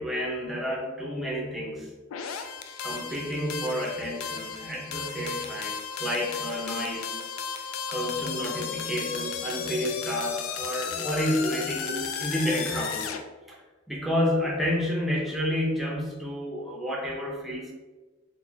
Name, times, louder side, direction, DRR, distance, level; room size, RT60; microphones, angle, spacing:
voice 1, 0.0-1.9 2.8-7.2 7.9-13.2 13.5-13.6 13.9-17.7, equal, ahead, -3 dB, 0.6 m, -30 dB
sound 1, 2.1-13.2, left 6 dB, 85° left, 0.3 m, -34 dB
2.8 x 2.4 x 3.9 m, 1.3 s
head